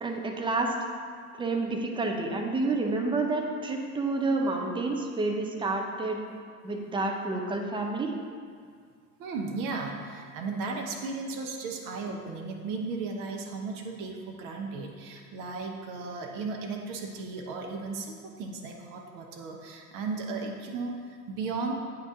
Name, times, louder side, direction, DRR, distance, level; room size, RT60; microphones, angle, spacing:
voice 1, 0.0-0.8 1.3-6.2 6.6-8.1, right 3 dB, 10° right, 2 dB, 0.6 m, -29 dB
voice 2, 9.2-21.7, right 4 dB, 45° right, 2 dB, 0.8 m, -35 dB
8.9 x 3.0 x 3.6 m, 2.1 s
figure-of-eight pair, 75°, 46 cm